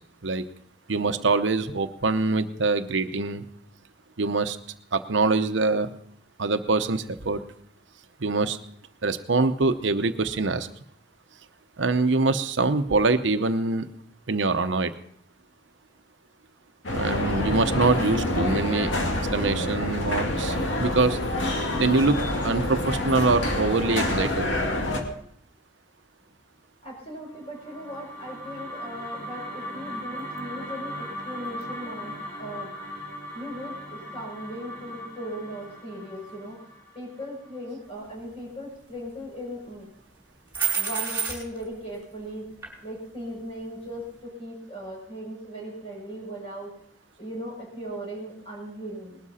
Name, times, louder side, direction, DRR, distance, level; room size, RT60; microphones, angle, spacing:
voice 1, 0.9-3.4 4.2-4.6 4.9-5.9 6.4-7.4 8.2-8.6 9.0-10.7 11.8-13.9 14.3-14.9 16.9-18.9 19.3-21.2 21.8-24.5, right 3 dB, 75° right, 9 dB, 0.8 m, -24 dB
sound 1, 16.8-25.0, left 1 dB, 90° left, 2.1 m, -27 dB
voice 2, 26.8-32.1 32.4-32.7 33.3-36.6 36.9-39.9 40.7-42.4 42.8-46.7 47.2-49.2, equal, 35° left, -2 dB, 7.1 m, -38 dB
sound 2, 27.3-37.6, equal, 10° left, 4.2 m, -39 dB
sound 3, 40.5-41.7 42.6-42.7, right 7 dB, 10° right, 5.1 m, -27 dB
19.5 x 12.5 x 4.2 m, 0.67 s
head